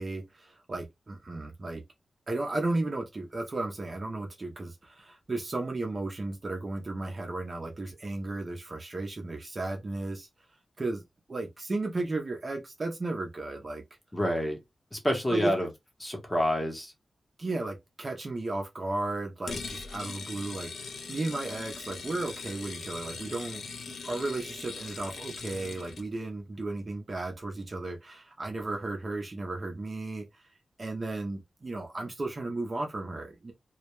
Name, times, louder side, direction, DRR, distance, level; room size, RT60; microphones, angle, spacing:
voice 1, 0.0-1.8 2.3-10.3 10.8-13.8 15.3-15.5 17.4-30.4 30.8-33.5, right 2 dB, 30° right, 0.5 m, -34 dB
voice 2, 14.1-14.6 14.9-15.7 16.0-16.9, equal, 10° left, 0.7 m, -28 dB
sound 1, 19.5-26.1, left 4 dB, 75° left, 0.5 m, -40 dB
2.2 x 2.1 x 2.9 m
wide cardioid pair, 175°, 0 cm